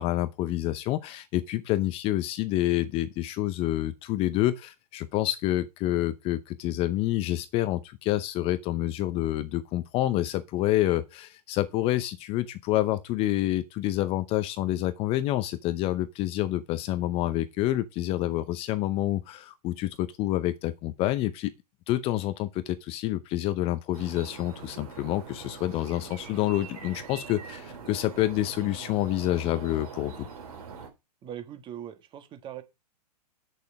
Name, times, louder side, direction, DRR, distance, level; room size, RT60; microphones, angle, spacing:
voice 1, 0.0-21.5 21.9-30.1, left 15 dB, 30° left, 0.7 m, -28 dB
sound 1, 23.9-30.9, right 5 dB, 60° right, 3.3 m, -43 dB
voice 2, 31.2-32.6, right 10 dB, 25° right, 1.6 m, -40 dB
8.4 x 6.7 x 4.8 m
figure-of-eight pair, 115°, 21 cm